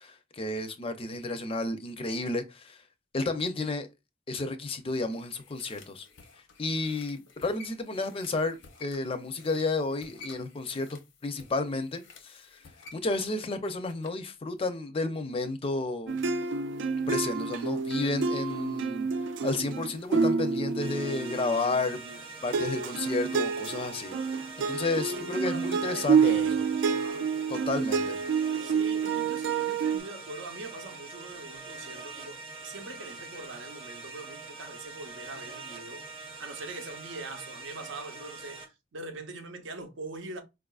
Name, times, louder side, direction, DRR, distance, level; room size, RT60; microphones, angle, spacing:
voice 1, 0.1-2.8 3.1-3.9 4.3-6.1 6.6-12.6 12.9-16.2 17.1-26.5 27.5-28.2, left 3 dB, 30° left, 0.4 m, -32 dB
sound 1, 4.8-14.3 14.6-14.7, left 3 dB, 90° left, 0.7 m, -53 dB
sound 2, 16.1-22.2 22.5-30.0, right 5 dB, 70° right, 0.3 m, -29 dB
sound 3, 20.8-38.7, right 3 dB, 30° right, 0.8 m, -44 dB
voice 2, 25.0-27.3 28.6-40.4, right 2 dB, 85° right, 0.7 m, -43 dB
4.6 x 2.4 x 2.3 m
head